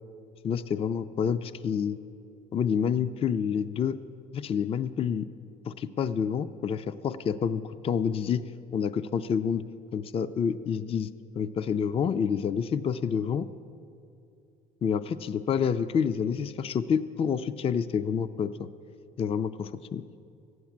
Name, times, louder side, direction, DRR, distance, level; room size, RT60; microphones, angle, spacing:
voice 1, 0.4-2.0 2.5-4.0 4.3-5.3 5.7-8.4 8.7-9.6 9.9-11.1 11.4-13.5 14.8-18.7 19.2-20.0, left 7 dB, 35° left, 14 dB, 0.4 m, -28 dB
13.5 x 9.4 x 7.2 m, 2.6 s
cardioid pair, 110°, 17 cm